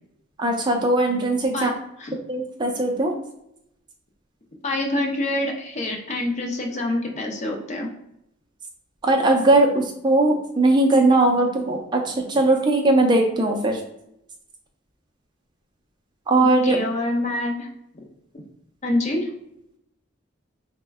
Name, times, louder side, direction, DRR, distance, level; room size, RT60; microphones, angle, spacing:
voice 1, 0.4-1.7 2.3-3.1 9.0-13.8 16.3-16.8, right 2 dB, 20° right, 1 dB, 0.4 m, -19 dB
voice 2, 4.6-7.9 12.3-12.4 16.4-17.7 17.9-18.1 18.8-19.3, left 1 dB, 35° left, 1 dB, 0.5 m, -26 dB
4.2 x 2.1 x 3.4 m, 0.79 s
head